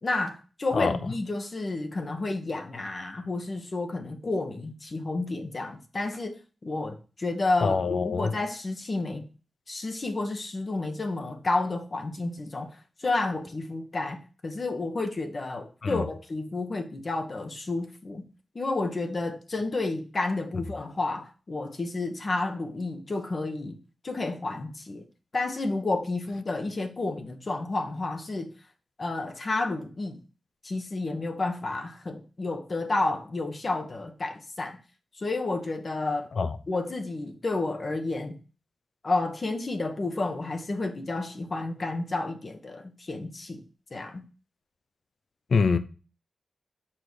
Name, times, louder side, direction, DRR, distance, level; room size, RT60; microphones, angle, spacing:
voice 1, 0.0-9.3 9.7-12.7 13.0-18.2 18.5-23.8 24.0-25.0 25.3-28.5 29.0-30.2 30.6-34.8 35.2-36.3 36.7-38.4 39.0-43.6 43.9-44.2, left 2 dB, 45° left, 1.3 m, -31 dB
voice 2, 7.6-8.3 15.8-16.0 20.5-20.6 36.4-36.6 45.5-45.8, left 5 dB, 65° left, 0.7 m, -24 dB
6.2 x 5.0 x 6.3 m
wide cardioid pair, 105°, 0 cm